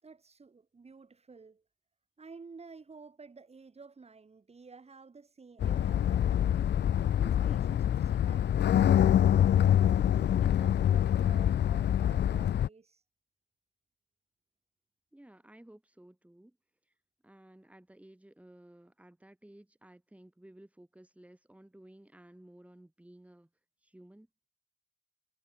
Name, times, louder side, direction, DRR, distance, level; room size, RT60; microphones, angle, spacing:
voice 1, 0.0-1.6 2.2-6.8 7.2-9.4 9.7-13.0, right 4 dB, 30° right, 7.4 m, -52 dB
sound 1, 5.6-12.7, left 10 dB, 55° left, 0.8 m, -25 dB
voice 2, 15.1-16.6 16.8-16.9 17.2-23.5 23.8-24.3, right 1 dB, 5° right, 5.8 m, -55 dB
cardioid pair, 105°, 20 cm